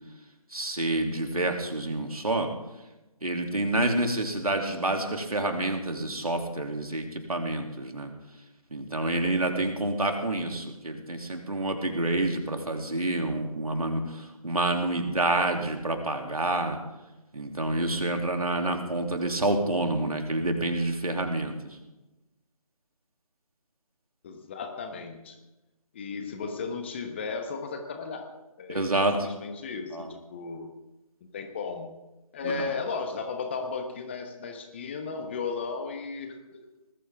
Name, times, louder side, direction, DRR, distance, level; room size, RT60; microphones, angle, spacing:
voice 1, 0.5-2.5 3.2-8.1 8.7-14.0 14.4-16.8 17.3-21.6 28.7-29.2 29.9-30.1 32.4-32.5, right 2 dB, 75° right, 3 dB, 2.9 m, -28 dB
voice 2, 24.2-25.4 25.9-28.3 28.6-28.8 29.2-30.7 31.3-31.9 32.3-36.6, left 4 dB, 20° left, 5 dB, 1.1 m, -35 dB
19.5 x 14.5 x 3.6 m, 1.0 s
figure-of-eight pair, 155°, 19 cm